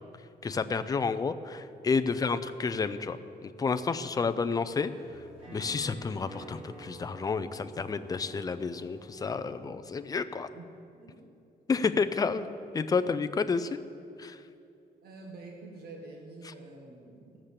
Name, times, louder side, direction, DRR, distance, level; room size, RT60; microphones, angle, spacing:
voice 1, 0.4-4.9 5.5-10.5 11.7-12.5 12.7-13.8 14.2-14.4 16.5-16.6, left 5 dB, 20° left, 11 dB, 0.4 m, -30 dB
sound 1, 3.6-9.1, right 2 dB, 35° right, 2.9 m, -51 dB
voice 2, 9.2-9.7 10.5-10.7 10.9-11.3 13.0-13.1 15.0-17.4, right 3 dB, 70° right, 0 dB, 1.5 m, -48 dB
15.0 x 7.4 x 6.6 m, 2.6 s
wide cardioid pair, 155°, 17 cm